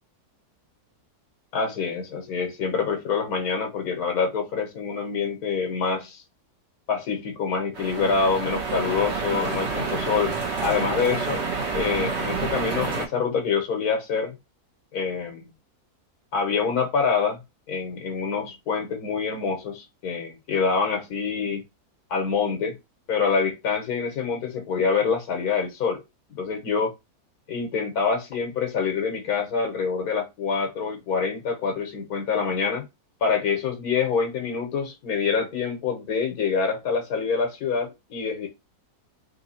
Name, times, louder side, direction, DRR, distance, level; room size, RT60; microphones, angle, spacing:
voice 1, 1.5-6.2 6.9-11.5 11.7-14.4 14.9-15.5 16.3-17.4 17.7-21.6 22.1-22.8 23.1-26.0 26.4-26.9 27.5-32.8 33.2-38.5, left 5 dB, 75° left, 1.6 m, -26 dB
sound 1, 7.7-13.1, right 4 dB, 45° right, 1.4 m, -28 dB
3.8 x 2.8 x 4.2 m
omnidirectional pair, 1.6 m